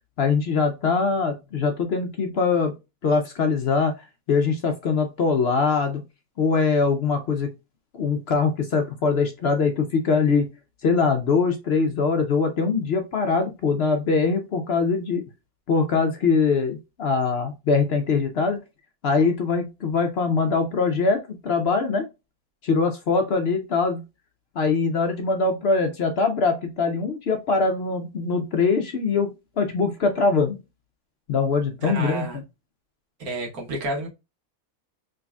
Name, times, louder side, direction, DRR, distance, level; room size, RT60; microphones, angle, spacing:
voice 1, 0.2-2.7 3.0-6.0 6.4-7.5 7.9-10.5 10.8-15.2 15.7-18.6 19.0-22.1 22.6-24.0 24.6-30.6 31.3-32.4, left 4 dB, 60° left, 0.7 m, -22 dB
voice 2, 31.8-32.4 33.2-34.1, right 1 dB, 85° right, 1.7 m, -30 dB
3.8 x 3.2 x 2.2 m
omnidirectional pair, 1.5 m